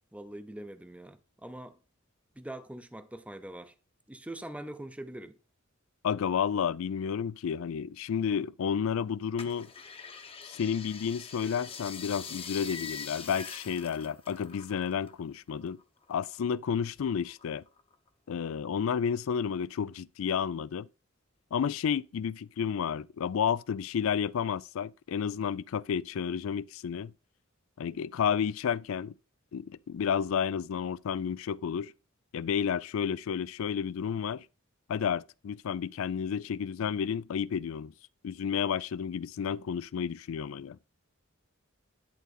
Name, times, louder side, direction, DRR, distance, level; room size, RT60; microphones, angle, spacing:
voice 1, 0.1-1.8 2.4-3.7 4.1-5.4, right 1 dB, 5° right, 0.6 m, -43 dB
voice 2, 6.0-9.7 10.5-15.8 16.1-17.6 18.3-20.9 21.5-27.1 27.8-29.1 29.5-31.9 32.3-34.5 34.9-37.9 38.2-40.8, left 7 dB, 70° left, 0.4 m, -31 dB
sound 1, 9.4-15.2 15.5-16.8 17.2-18.1 18.6-18.7, left 6 dB, 25° left, 0.9 m, -44 dB
10.5 x 3.9 x 4.1 m
head